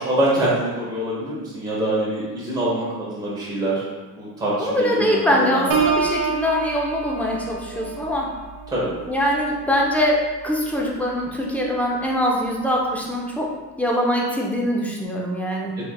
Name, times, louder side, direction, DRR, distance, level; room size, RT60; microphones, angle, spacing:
voice 1, 0.0-3.8 4.2-5.2 5.5-5.6 8.7-8.9, right 1 dB, 10° right, -8 dB, 1.0 m, -24 dB
voice 2, 4.6-8.3 9.1-13.5 13.8-15.7, equal, 5° left, -2 dB, 0.4 m, -23 dB
Piano, 5.7-11.3 11.8-12.1, right 5 dB, 65° right, 0.5 m, -29 dB
3.2 x 2.7 x 2.3 m, 1.2 s
cardioid pair, 100°, 36 cm